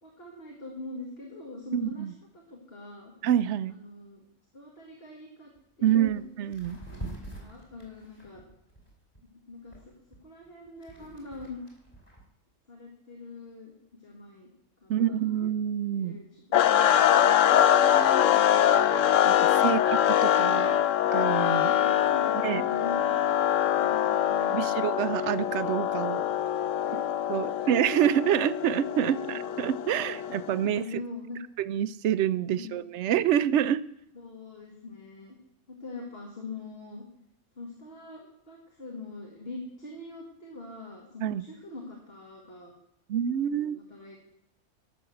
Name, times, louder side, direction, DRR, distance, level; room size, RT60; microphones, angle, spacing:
voice 1, 0.0-2.0 2.3-3.1 3.7-4.2 4.5-5.5 5.8-6.3 7.4-8.4 9.2-9.9 10.2-11.6 12.7-14.5 14.8-15.5 15.9-17.1 17.6-17.8 21.8-23.1 23.8-24.8 26.8-27.7 29.1-29.4 30.5-31.4 32.5-32.8 34.1-35.4 35.7-37.0 37.6-42.7 43.3-44.2, left 3 dB, 45° left, -1 dB, 2.2 m, -43 dB
voice 2, 1.7-2.1 3.2-3.7 5.8-6.8 14.9-16.2 19.3-20.8 21.1-21.8 22.4-22.7 24.4-26.3 26.9-27.0 27.3-31.0 31.6-33.8 41.2-41.4 43.1-43.8, right 10 dB, 65° right, 16 dB, 0.8 m, -27 dB
sound 1, 5.6-5.7 6.0-6.2 6.5-9.2 9.7-12.2, right 2 dB, 30° left, 4.1 m, -44 dB
sound 2, 16.5-30.6, left 10 dB, 75° left, 1.0 m, -24 dB
12.5 x 6.5 x 7.7 m, 0.76 s
omnidirectional pair, 1.4 m